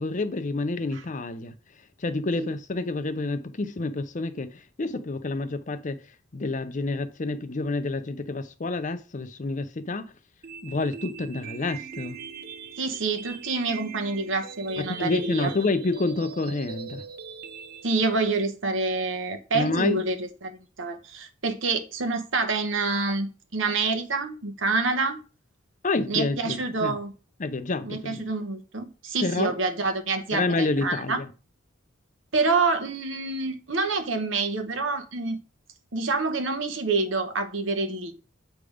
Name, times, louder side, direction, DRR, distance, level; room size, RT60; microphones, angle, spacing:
voice 1, 0.0-1.5 2.0-6.0 6.3-10.1 10.6-12.2 14.8-17.0 19.5-20.0 25.8-27.0 27.4-28.2 29.2-29.5 30.3-31.3, left 3 dB, 40° left, 0.6 m, -28 dB
sound 1, 10.4-18.4, right 6 dB, 45° right, 0.5 m, -41 dB
voice 2, 12.8-15.5 17.8-25.2 26.1-27.1 27.8-31.2 32.3-35.4 35.9-38.1, right 3 dB, 65° right, 1.0 m, -27 dB
8.1 x 3.4 x 5.0 m
head